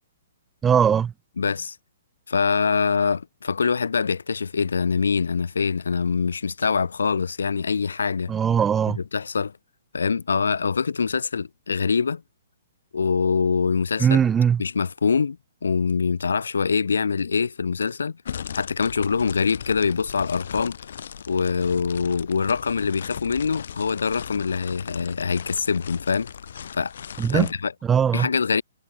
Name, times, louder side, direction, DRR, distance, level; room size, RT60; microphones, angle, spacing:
voice 1, 0.6-1.1 8.3-9.0 14.0-14.6 27.2-27.5 27.8-28.3, right 7 dB, 15° right, 0.4 m, -20 dB
voice 2, 1.4-1.7 2.3-8.3 8.9-9.5 9.9-12.2 12.9-14.2 14.6-15.4 15.6-18.2 18.5-20.8 21.3-26.3 26.8-26.9 27.3-27.7 28.1-28.6, left 5 dB, 85° left, 3.3 m, -24 dB
sound 1, 18.3-27.5, left 8 dB, 65° left, 2.7 m, -38 dB
hypercardioid pair, 145°, 0 cm